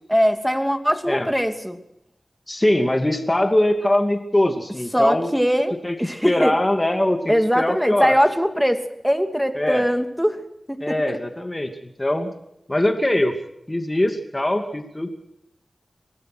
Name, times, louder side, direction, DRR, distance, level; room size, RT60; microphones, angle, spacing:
voice 1, 0.1-1.8 4.9-6.5 7.3-10.4 10.7-11.2, equal, ahead, 7 dB, 2.6 m, -21 dB
voice 2, 2.5-5.3 5.8-6.0 6.2-8.2 9.6-9.8 10.8-12.3 12.7-13.3 13.7-15.1, left 1 dB, 25° left, 5 dB, 2.6 m, -22 dB
25.0 x 19.0 x 6.3 m, 0.80 s
cardioid pair, 45°, 0 cm